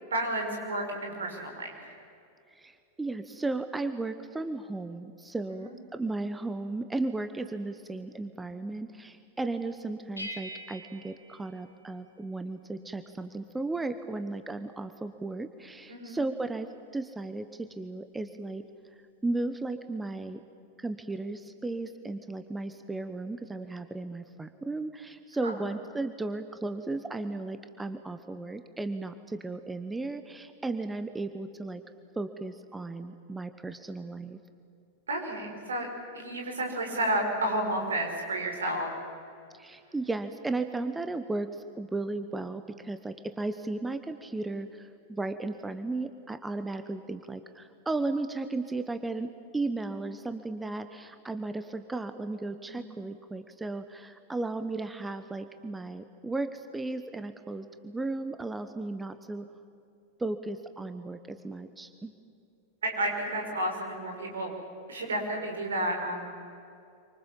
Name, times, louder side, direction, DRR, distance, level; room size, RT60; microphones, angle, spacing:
voice 1, 0.1-1.9 5.5-5.7 15.9-16.2 25.4-25.6 35.1-35.9 36.1-38.9 52.7-52.9 62.8-64.5 64.9-66.3, right 1 dB, 70° right, 3 dB, 5.8 m, -31 dB
voice 2, 2.5-18.6 19.2-20.4 20.8-31.8 32.1-34.4 39.5-59.5 60.2-62.1, right 2 dB, 10° right, 9 dB, 1.2 m, -35 dB
sound 1, 10.2-12.4, equal, 85° left, 2.6 m, -44 dB
27.5 x 25.0 x 7.5 m, 2.6 s
figure-of-eight pair, 90°, 0 cm